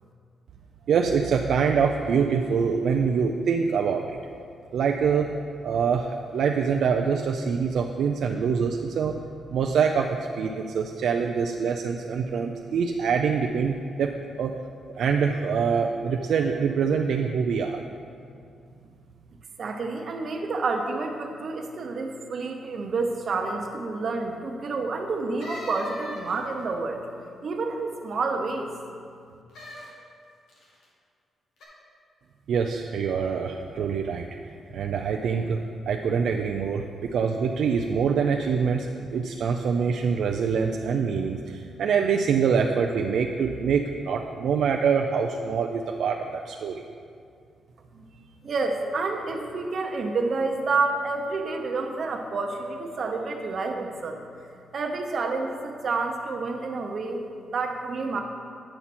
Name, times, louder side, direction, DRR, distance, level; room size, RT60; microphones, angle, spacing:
voice 1, 0.9-4.2 4.7-5.3 5.6-9.2 9.5-14.1 14.4-14.5 15.0-17.8 32.5-34.3 34.7-35.6 35.9-46.8, right 6 dB, 70° right, 3 dB, 0.3 m, -25 dB
voice 2, 19.6-27.0 27.4-28.7 47.9-48.0 48.4-54.2 54.7-57.2 57.5-58.2, right 3 dB, 45° right, 3 dB, 0.8 m, -29 dB
sound 1, 25.4-26.6 29.5-29.9 30.5-30.9 31.6-31.7, left 1 dB, 80° left, 1.6 m, -41 dB
8.7 x 5.7 x 4.2 m, 2.4 s
cardioid pair, 145°, 0 cm